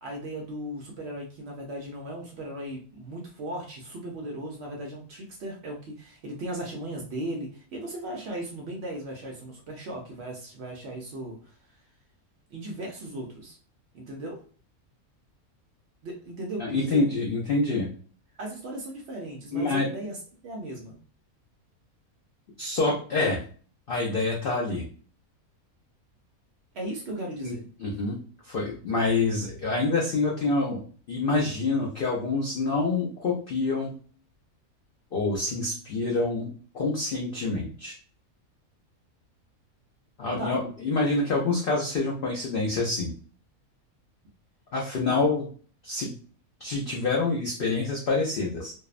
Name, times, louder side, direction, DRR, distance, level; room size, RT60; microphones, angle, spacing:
voice 1, 0.0-11.6 12.5-13.6 13.9-14.4 16.0-17.1 18.4-21.0 26.7-27.7 40.4-40.6 45.1-45.2, right 1 dB, 65° right, 0 dB, 0.7 m, -37 dB
voice 2, 16.6-17.9 19.5-19.9 22.6-23.4 23.9-24.8 27.4-27.5 27.8-28.2 28.4-30.8 31.1-33.9 35.1-38.0 40.2-43.1 44.7-45.4 45.8-46.1 46.6-48.7, left 3 dB, 80° left, -2 dB, 0.5 m, -26 dB
2.6 x 2.0 x 2.3 m, 0.42 s
omnidirectional pair, 1.5 m